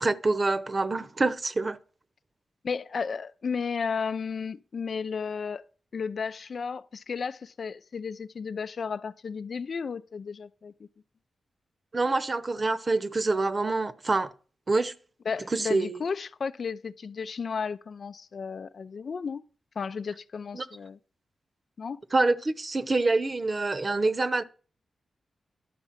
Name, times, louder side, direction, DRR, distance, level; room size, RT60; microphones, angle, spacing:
voice 1, 0.0-1.8 11.9-14.3 14.7-14.9 15.5-16.0 20.5-20.7 22.1-24.4, right 3 dB, 40° right, 0.9 m, -26 dB
voice 2, 2.6-5.6 5.9-10.9 15.3-19.4 19.8-21.0 21.8-22.0, left 5 dB, 60° left, 0.7 m, -33 dB
11.0 x 5.1 x 7.4 m
cardioid pair, 60°, 0 cm